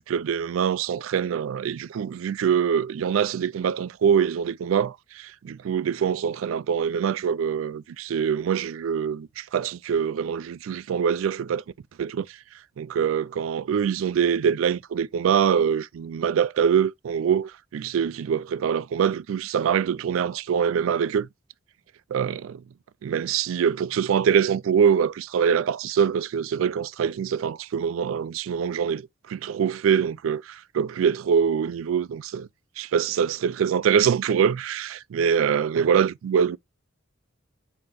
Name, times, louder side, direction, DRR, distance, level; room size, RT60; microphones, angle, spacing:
voice 1, 0.0-11.6 12.0-12.4 12.8-21.3 22.1-22.6 23.0-32.5 32.8-36.6, right 7 dB, 80° right, 0.3 m, -24 dB
5.3 x 2.9 x 3.4 m
head